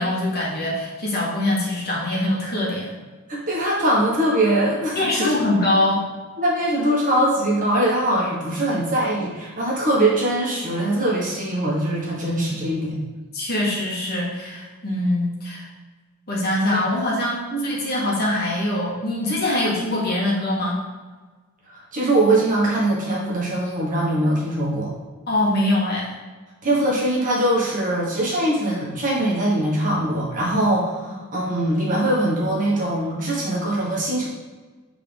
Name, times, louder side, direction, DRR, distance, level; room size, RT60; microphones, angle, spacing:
voice 1, 0.0-2.9 4.9-6.1 13.3-15.6 16.3-20.8 25.3-26.1, left 1 dB, 45° left, -4 dB, 1.6 m, -23 dB
voice 2, 3.3-5.3 6.4-13.0 16.7-16.8 17.5-17.8 21.7-24.9 26.6-34.3, right 1 dB, 35° right, -5 dB, 1.6 m, -22 dB
7.1 x 3.8 x 3.5 m, 1.3 s
head